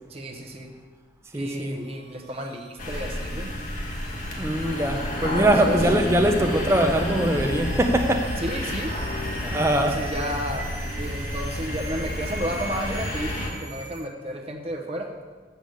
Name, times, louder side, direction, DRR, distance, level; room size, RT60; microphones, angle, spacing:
voice 1, 0.1-0.7 1.3-3.5 5.0-5.8 8.4-8.9 9.5-15.1, equal, 35° right, 1 dB, 1.0 m, -32 dB
voice 2, 1.3-1.8 4.4-8.3 9.4-9.9, right 1 dB, 15° right, 3 dB, 0.7 m, -22 dB
sound 1, 1.8-14.1, right 4 dB, 60° right, 1.0 m, -43 dB
sound 2, 2.8-13.5, left 1 dB, 50° left, 1.6 m, -30 dB
7.0 x 6.8 x 7.8 m, 1.5 s
head